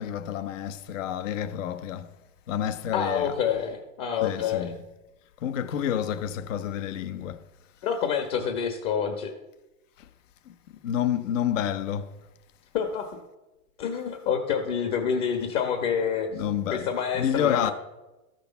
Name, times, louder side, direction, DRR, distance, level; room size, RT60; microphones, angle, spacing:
voice 1, 0.0-2.0 2.5-3.2 4.2-4.7 5.4-7.4 10.8-12.1 16.4-16.8 17.2-17.7, left 10 dB, 60° left, 1.0 m, -28 dB
voice 2, 2.9-4.7 7.8-9.3 12.7-13.1 13.8-16.4 16.7-17.7, left 7 dB, 40° left, 1.4 m, -27 dB
13.0 x 6.7 x 6.8 m
hypercardioid pair, 135°, 43 cm